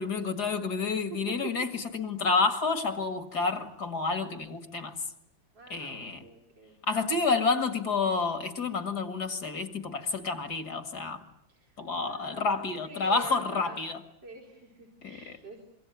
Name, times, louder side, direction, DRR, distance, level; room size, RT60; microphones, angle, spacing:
voice 1, 0.0-5.0 5.7-6.2 6.8-11.2 11.8-14.0 15.0-15.3, left 4 dB, 55° left, 2.7 m, -29 dB
voice 2, 5.5-6.8 11.5-12.5 12.8-13.8 14.2-15.6, right 2 dB, 70° right, 5.3 m, -46 dB
26.5 x 23.5 x 9.4 m
omnidirectional pair, 2.0 m